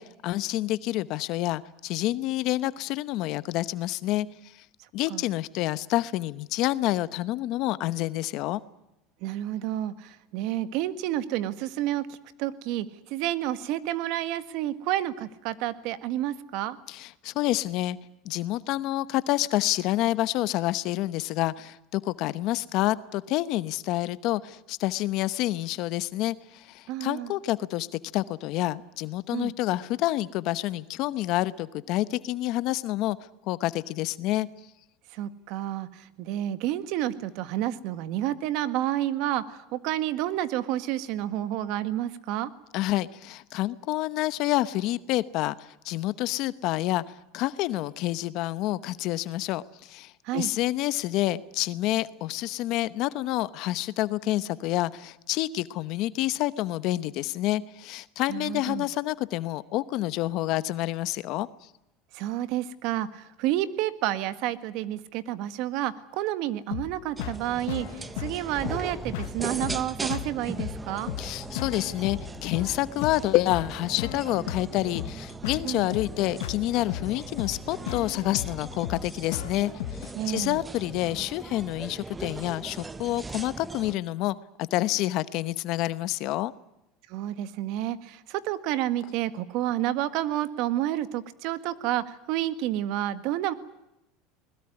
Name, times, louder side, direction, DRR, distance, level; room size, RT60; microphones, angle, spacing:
voice 1, 0.0-4.5 4.9-8.6 16.9-18.0 18.2-33.2 33.5-34.5 42.7-61.5 71.2-86.5, left 16 dB, 60° left, 15 dB, 0.9 m, -28 dB
voice 2, 9.2-16.8 26.9-27.3 29.3-29.5 35.1-42.5 50.2-50.5 58.3-58.9 62.1-71.1 75.6-75.8 80.1-80.6 87.1-93.5, right 13 dB, 60° right, 12 dB, 1.7 m, -30 dB
sound 1, 66.7-80.1, left 13 dB, 80° left, 1.3 m, -36 dB
sound 2, 67.2-84.0, right 3 dB, 15° right, 0.9 m, -39 dB
21.5 x 20.5 x 9.8 m, 0.89 s
supercardioid pair, 125°, 0 cm